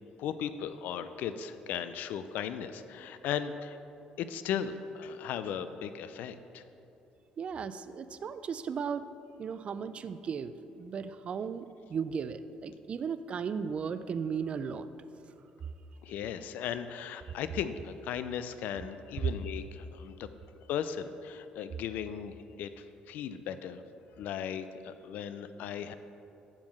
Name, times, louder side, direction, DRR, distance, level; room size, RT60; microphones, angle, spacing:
voice 1, 0.2-3.8 4.2-6.6 16.0-20.3 20.7-23.8 24.2-25.9, left 8 dB, 75° left, 11 dB, 0.3 m, -37 dB
voice 2, 7.4-9.1 9.4-14.9, right 6 dB, 40° right, 13 dB, 0.3 m, -36 dB
8.9 x 3.7 x 6.3 m, 2.8 s
cardioid pair, 115°, 3 cm